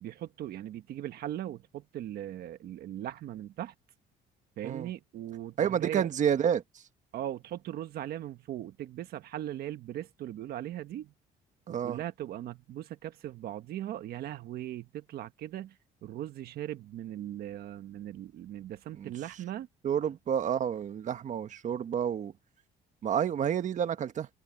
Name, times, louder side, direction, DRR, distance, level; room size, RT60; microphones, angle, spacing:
voice 1, 0.0-3.7 4.6-6.1 7.1-11.1 11.7-19.7, right 12 dB, 65° right, 1.3 m, -39 dB
voice 2, 5.6-6.6 11.7-12.0 19.0-19.1 19.8-22.3 23.0-24.3, right 8 dB, 45° right, 1.4 m, -29 dB
cardioid pair, 110°, 17 cm